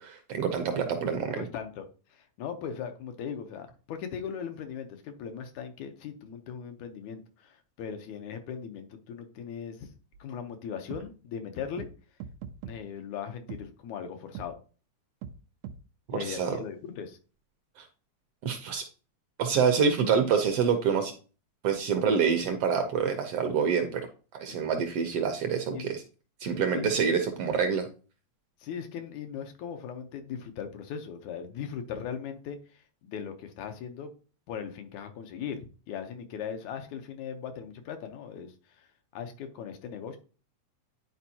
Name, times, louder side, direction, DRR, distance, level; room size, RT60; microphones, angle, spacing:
voice 1, 0.0-1.5 16.3-16.5 17.8-17.9 18.4-18.8 19.4-21.1 21.6-24.0 24.3-25.9 26.4-27.9, right 6 dB, 70° right, 6 dB, 1.5 m, -26 dB
voice 2, 1.3-1.8 2.1-9.9 10.2-11.9 12.7-14.6 16.1-17.2 24.5-24.7 25.7-26.0 26.7-26.9 28.6-34.1 34.5-38.9 39.1-40.2, left 7 dB, 80° left, 6 dB, 2.3 m, -39 dB
sound 1, 10.1-10.2 10.9-11.0 11.8-11.9 12.2-12.8 13.5-13.6 14.3-14.5 15.2-15.4 15.6-15.8, right 8 dB, 85° right, 2.0 m, -40 dB
10.5 x 4.4 x 2.8 m, 0.37 s
omnidirectional pair, 3.3 m